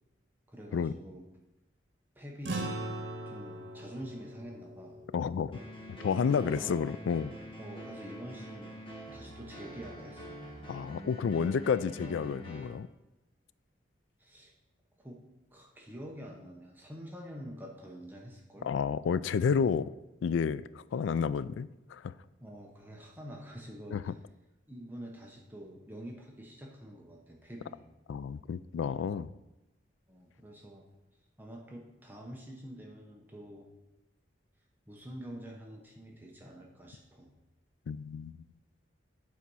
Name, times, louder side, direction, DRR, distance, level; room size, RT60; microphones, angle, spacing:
voice 1, 0.5-1.3 2.2-2.7 3.3-5.0 6.4-6.9 7.6-8.8 9.1-10.4 14.2-14.5 15.0-15.2 15.5-18.7 22.4-24.2 24.7-27.8 30.1-30.9 31.4-33.7 34.9-37.3, equal, 10° right, -1 dB, 0.8 m, -46 dB
sound 1, 2.4-7.1, right 2 dB, 60° right, 1.6 m, -41 dB
voice 2, 5.1-5.6 6.0-7.3 10.7-12.9 18.6-19.9 20.2-22.1 23.9-24.0 28.1-29.3 37.9-38.3, left 6 dB, 75° left, 17 dB, 0.3 m, -30 dB
sound 2, 5.5-12.7, right 1 dB, 30° left, 1.6 m, -46 dB
8.2 x 4.2 x 6.2 m, 0.98 s
head